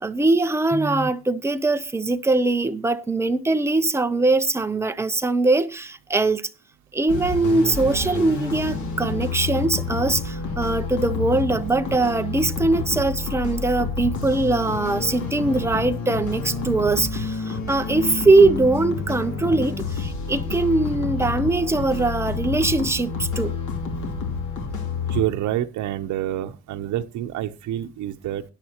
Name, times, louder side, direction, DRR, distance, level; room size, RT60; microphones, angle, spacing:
voice 1, 0.0-6.5 6.9-23.5, right 2 dB, 10° right, 0.5 m, -21 dB
sound 1, 7.1-25.2, left 4 dB, 80° left, 2.8 m, -29 dB
voice 2, 25.1-28.4, right 12 dB, 80° right, 0.8 m, -27 dB
17.0 x 10.5 x 2.9 m
cardioid pair, 180°, 29 cm